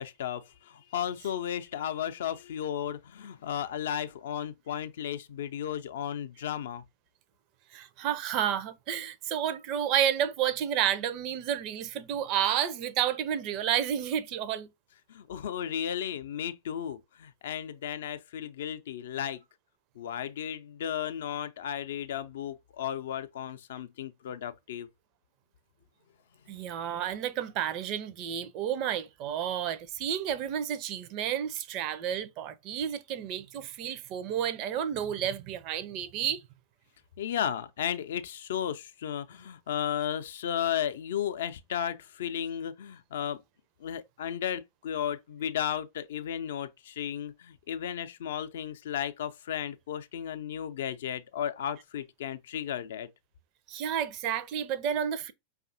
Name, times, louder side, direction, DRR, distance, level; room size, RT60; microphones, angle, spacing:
voice 1, 0.0-6.8 15.1-19.4 20.0-24.9 26.4-26.6 37.2-43.4 43.8-53.1, left 9 dB, 60° left, 0.4 m, -34 dB
voice 2, 7.7-14.7 26.5-36.4 53.7-55.3, right 9 dB, 40° right, 0.4 m, -31 dB
5.1 x 2.4 x 2.5 m
figure-of-eight pair, 90°, 0 cm